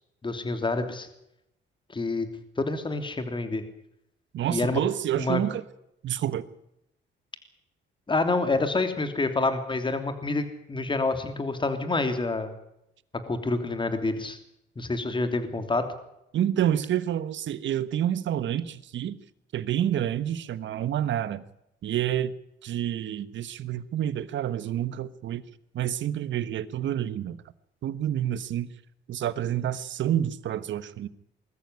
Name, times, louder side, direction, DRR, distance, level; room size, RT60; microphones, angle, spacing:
voice 1, 0.2-1.1 1.9-2.3 2.6-3.6 4.5-4.8 5.2-5.4 8.1-12.5 13.3-14.4 14.8-15.8, left 3 dB, 25° left, 8 dB, 3.2 m, -27 dB
voice 2, 4.3-5.6 6.0-6.5 16.3-19.2 19.5-21.4 21.8-22.3 22.6-25.4 25.7-27.4 27.8-28.7 29.1-31.1, right 11 dB, 70° right, 15 dB, 1.3 m, -28 dB
21.5 x 14.0 x 9.9 m, 0.81 s
cardioid pair, 90°, 20 cm